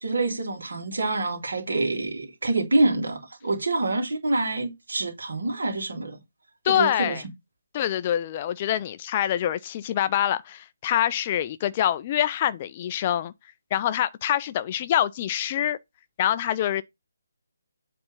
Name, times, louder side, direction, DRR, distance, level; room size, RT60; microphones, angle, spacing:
voice 1, 0.0-6.2 6.7-7.2, right 2 dB, 60° right, 2.5 m, -26 dB
voice 2, 6.6-7.2 7.7-13.3 13.7-15.8 16.2-16.8, left 11 dB, 25° left, 0.4 m, -25 dB
7.8 x 3.4 x 5.3 m
figure-of-eight pair, 145°, 0 cm